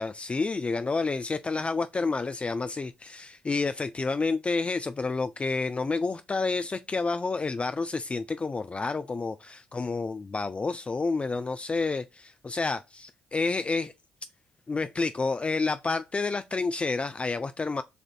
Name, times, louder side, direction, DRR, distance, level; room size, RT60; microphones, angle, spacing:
voice 1, 0.0-13.9 14.7-17.8, left 3 dB, 30° left, 0.3 m, -29 dB
6.7 x 2.5 x 2.4 m
hypercardioid pair, 50°, 4 cm